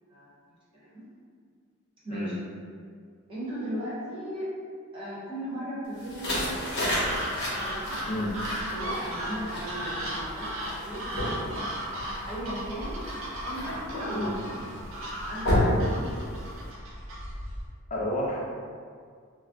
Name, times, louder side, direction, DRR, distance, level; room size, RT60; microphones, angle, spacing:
voice 1, 0.7-1.0 2.0-2.4 3.3-4.5 4.9-6.6 7.6-11.3 12.2-13.0 13.4-14.5 15.2-16.2, equal, 25° right, -10 dB, 0.9 m, -37 dB
sound 1, 6.0-16.7, left 1 dB, 55° left, 0.8 m, -32 dB
sound 2, 7.0-17.7, equal, 70° right, 0.5 m, -36 dB
voice 2, 17.9-18.4, left 1 dB, 35° left, -3 dB, 0.4 m, -30 dB
2.4 x 2.1 x 3.6 m, 2.1 s
head